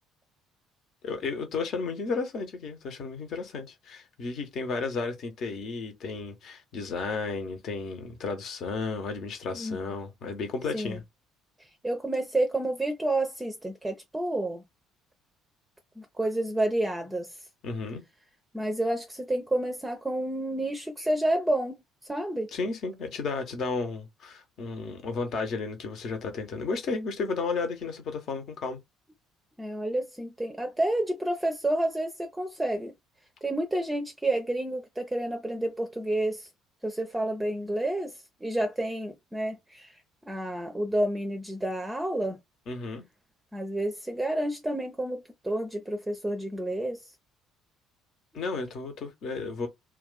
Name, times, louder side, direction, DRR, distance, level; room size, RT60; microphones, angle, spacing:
voice 1, 1.0-11.0 17.6-18.0 22.5-28.8 42.7-43.0 48.3-49.7, left 4 dB, 50° left, 0.9 m, -33 dB
voice 2, 11.8-14.6 16.0-17.3 18.5-21.8 22.1-22.5 29.6-32.9 33.4-36.5 36.8-38.1 38.4-40.0 40.3-42.4 43.5-47.0, right 1 dB, 10° right, 0.6 m, -29 dB
2.5 x 2.3 x 3.9 m
figure-of-eight pair, 55°, 0 cm